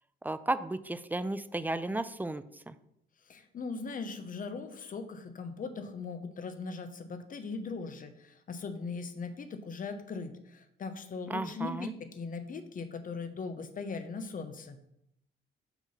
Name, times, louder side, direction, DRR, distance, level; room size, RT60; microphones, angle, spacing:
voice 1, 0.2-2.7 11.3-11.9, right 2 dB, 10° right, 13 dB, 0.3 m, -34 dB
voice 2, 3.3-14.8, left 4 dB, 45° left, 9 dB, 0.8 m, -39 dB
5.8 x 3.8 x 5.8 m, 0.79 s
cardioid pair, 90°, 20 cm